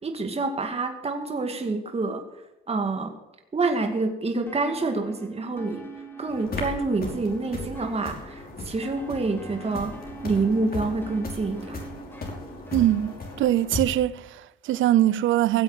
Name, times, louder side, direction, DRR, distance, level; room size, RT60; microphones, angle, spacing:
voice 1, 0.0-2.2 2.7-3.1 3.5-5.9 6.2-9.9 10.2-11.9, right 3 dB, 30° right, 2.2 m, -27 dB
sound 1, 4.5-13.4, right 2 dB, 10° left, 4.9 m, -44 dB
sound 2, 6.3-13.8, left 2 dB, 50° left, 5.4 m, -37 dB
voice 2, 12.7-15.6, right 13 dB, 80° right, 0.6 m, -22 dB
17.0 x 7.9 x 7.8 m
cardioid pair, 90°, 20 cm